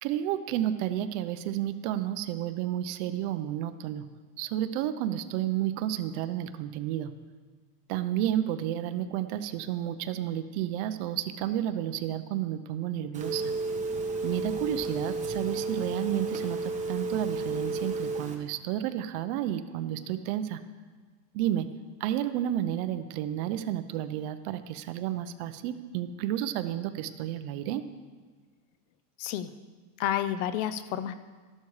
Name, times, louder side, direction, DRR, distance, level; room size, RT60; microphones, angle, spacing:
voice 1, 0.0-4.1 4.4-7.1 7.9-13.5 14.2-20.6 21.3-21.7 22.0-27.8, right 11 dB, 45° right, 10 dB, 0.7 m, -31 dB
Telephone, 13.1-18.3, right 3 dB, 15° right, 1.0 m, -32 dB
voice 2, 29.2-29.5 30.0-31.1, left 10 dB, 50° left, 13 dB, 0.7 m, -30 dB
13.5 x 12.0 x 4.9 m, 1.5 s
supercardioid pair, 160°, 50 cm